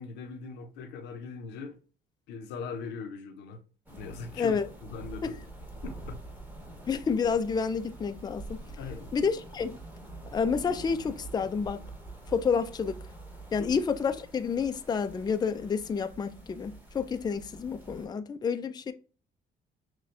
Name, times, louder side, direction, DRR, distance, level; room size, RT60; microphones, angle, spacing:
voice 1, 0.0-1.8 2.3-3.6 4.0-5.4 5.8-6.2 8.8-9.1 13.6-13.7, left 5 dB, 90° left, 0.8 m, -40 dB
sound 1, 3.9-18.1, right 2 dB, 10° right, 1.3 m, -46 dB
voice 2, 6.9-8.6 9.1-9.8 10.3-11.9 12.3-13.0 13.5-18.9, left 6 dB, 25° left, 0.4 m, -29 dB
6.2 x 2.3 x 2.6 m
cardioid pair, 105°, 18 cm